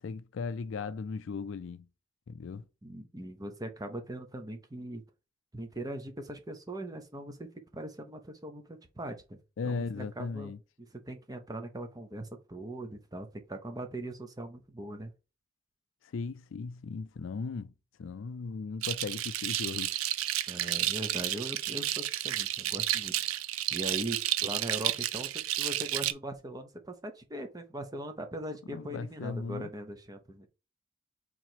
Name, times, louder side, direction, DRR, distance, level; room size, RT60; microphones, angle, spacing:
voice 1, 0.0-1.9 2.3-2.7 9.6-10.6 16.0-17.7 18.0-20.0 28.7-29.7, left 4 dB, 70° left, 0.4 m, -37 dB
voice 2, 2.8-5.0 5.5-10.5 10.9-15.1 20.5-23.4 23.7-30.5, right 1 dB, 20° right, 0.7 m, -40 dB
sound 1, 18.8-26.1, right 13 dB, 90° right, 0.4 m, -31 dB
3.9 x 3.0 x 4.5 m
head